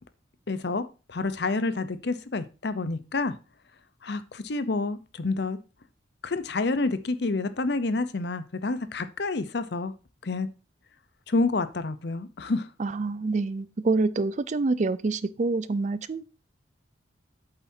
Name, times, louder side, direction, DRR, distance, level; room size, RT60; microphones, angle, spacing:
voice 1, 0.5-0.8 1.1-3.3 4.0-5.6 6.2-9.9 10.2-10.5 11.3-12.7, left 3 dB, 60° left, 0.7 m, -28 dB
voice 2, 12.8-16.2, right 3 dB, 40° right, 0.4 m, -26 dB
8.9 x 7.2 x 2.7 m
head